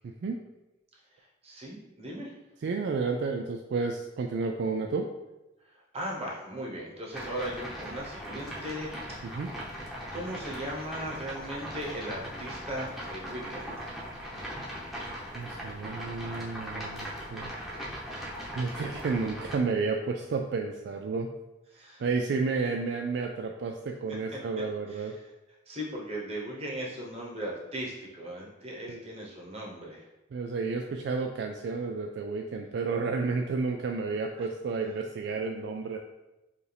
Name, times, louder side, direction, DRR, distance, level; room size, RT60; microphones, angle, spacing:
voice 1, 0.0-0.4 2.6-5.1 9.2-9.5 15.3-17.5 18.5-21.3 22.0-25.1 28.9-29.0 30.3-36.0, right 4 dB, 65° right, 3 dB, 0.3 m, -31 dB
voice 2, 1.2-2.3 5.7-9.4 10.1-13.7 21.7-22.0 24.3-24.4 24.9-25.2 25.7-30.1, equal, 35° right, -2 dB, 0.9 m, -38 dB
sound 1, 7.1-19.6, equal, ahead, 0.9 m, -39 dB
4.9 x 2.5 x 3.3 m, 0.99 s
head